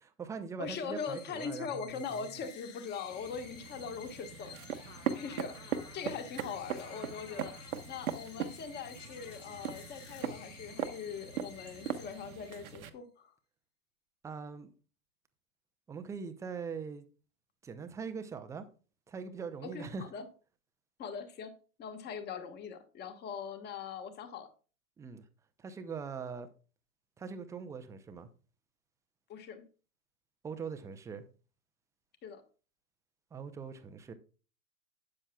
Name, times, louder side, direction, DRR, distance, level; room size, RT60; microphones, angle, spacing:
voice 1, 0.0-2.3 14.2-14.7 15.9-17.0 17.6-18.6 19.1-20.0 25.0-25.2 25.6-26.5 27.2-28.3 30.4-31.2 33.3-34.1, right 5 dB, 5° right, 0.6 m, -42 dB
voice 2, 0.6-4.8 5.1-13.3 19.6-20.3 21.0-21.5 21.8-24.5 29.3-29.6 32.2-32.4, left 6 dB, 20° left, 1.5 m, -41 dB
sound 1, 1.0-12.9, left 8 dB, 55° left, 2.1 m, -54 dB
sound 2, 1.9-10.2, left 5 dB, 70° left, 4.4 m, -58 dB
sound 3, 3.0-12.9, right 8 dB, 65° right, 1.2 m, -40 dB
12.5 x 8.6 x 2.3 m
figure-of-eight pair, 110°, 45 cm